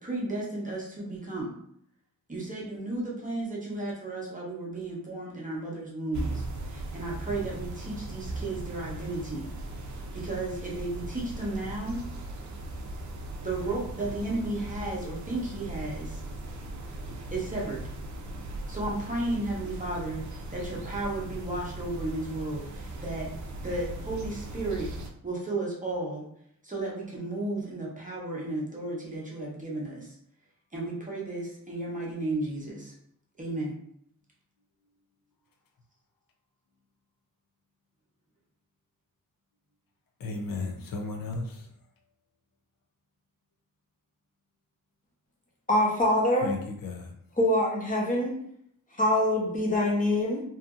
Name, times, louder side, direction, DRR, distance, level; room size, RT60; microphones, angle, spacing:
voice 1, 0.0-1.5 2.3-9.5 10.1-12.0 13.4-16.2 17.3-17.8 18.7-23.3 23.6-24.9 25.2-26.2 26.6-30.2 30.7-32.9 33.4-33.7, right 2 dB, 25° right, -4 dB, 0.7 m, -34 dB
sound 1, 6.1-25.1, right 2 dB, 60° right, 0.5 m, -38 dB
voice 2, 40.2-41.7 46.4-47.1, left 3 dB, 75° left, 2 dB, 0.5 m, -34 dB
voice 3, 45.7-46.5 47.4-48.3 48.9-50.4, left 1 dB, 25° left, -3 dB, 0.7 m, -24 dB
2.7 x 2.5 x 2.4 m, 0.69 s
wide cardioid pair, 150°, 34 cm